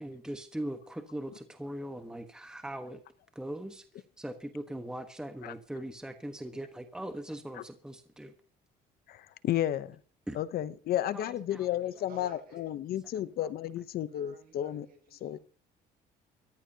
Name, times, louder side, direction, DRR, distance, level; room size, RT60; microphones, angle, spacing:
voice 1, 0.0-3.0 3.3-3.8 4.2-8.3 10.3-10.4 11.1-11.9, right 1 dB, 5° right, 1.2 m, -40 dB
voice 2, 9.1-10.0 10.3-14.8 15.2-15.4, left 12 dB, 65° left, 0.8 m, -32 dB
voice 3, 12.1-12.7 14.1-15.4, right 4 dB, 65° right, 7.2 m, -53 dB
22.0 x 14.5 x 2.9 m
cardioid pair, 110°, 17 cm